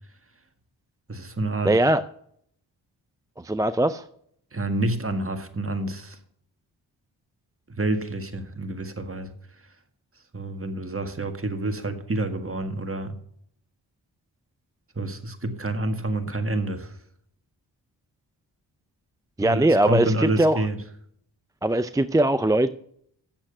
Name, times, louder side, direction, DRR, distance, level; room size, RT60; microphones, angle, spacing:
voice 1, 1.1-1.8 4.5-6.2 7.8-9.3 10.3-13.1 14.9-16.9 19.4-20.8, right 2 dB, 30° right, 7 dB, 1.8 m, -28 dB
voice 2, 1.6-2.0 3.4-4.0 19.4-20.6 21.6-22.7, right 1 dB, 10° right, 12 dB, 0.4 m, -21 dB
9.0 x 7.2 x 6.6 m, 0.68 s
cardioid pair, 45°, 46 cm